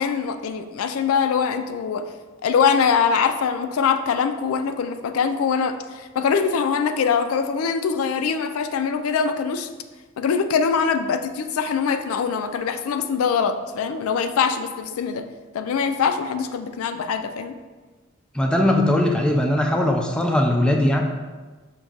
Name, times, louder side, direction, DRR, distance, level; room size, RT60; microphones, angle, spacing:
voice 1, 0.0-2.1 2.4-9.7 10.2-15.3 15.5-17.5, left 6 dB, 85° left, 9 dB, 0.3 m, -23 dB
voice 2, 18.3-21.0, left 1 dB, 5° left, 2 dB, 0.3 m, -20 dB
5.9 x 2.2 x 3.8 m, 1.3 s
head